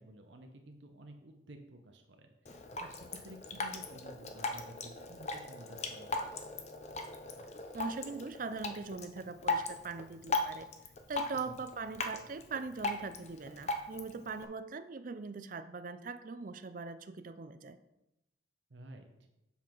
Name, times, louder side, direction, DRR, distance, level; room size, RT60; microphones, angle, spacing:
voice 1, 0.0-6.3 11.4-11.6 18.7-19.1, right 1 dB, 70° right, 4 dB, 0.8 m, -53 dB
Drip, 2.5-14.5, left 3 dB, 35° left, 0.6 m, -39 dB
voice 2, 7.7-10.7 11.1-17.8, right 4 dB, 45° right, 12 dB, 0.4 m, -41 dB
7.3 x 5.7 x 4.5 m, 0.92 s
head